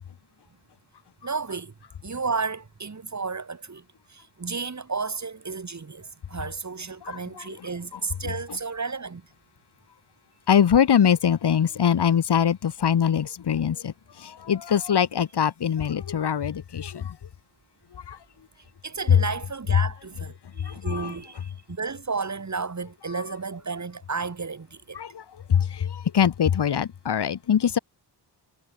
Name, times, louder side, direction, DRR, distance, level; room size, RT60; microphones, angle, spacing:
voice 1, 1.2-1.7 2.0-9.2 18.8-25.0, right 4 dB, 40° right, 5.9 m, -32 dB
voice 2, 10.5-13.9 14.2-17.1 18.1-18.2 20.7-21.1 24.9-25.2 25.5-27.8, left 8 dB, 65° left, 1.5 m, -23 dB
wide cardioid pair, 130°, 43 cm